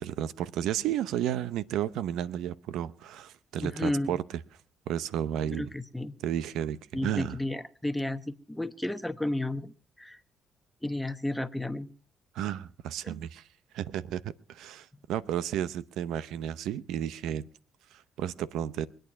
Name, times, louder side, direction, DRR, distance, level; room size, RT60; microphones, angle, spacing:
voice 1, 0.0-4.2 4.9-5.7 6.2-7.4 12.3-13.5 13.7-17.4 17.9-18.9, right 10 dB, 85° right, 0.7 m, -32 dB
voice 2, 3.6-4.2 5.5-6.2 6.9-10.2 10.8-11.9 13.0-13.1, left 1 dB, 5° left, 1.1 m, -32 dB
23.5 x 9.1 x 5.9 m
cardioid pair, 90°, 0 cm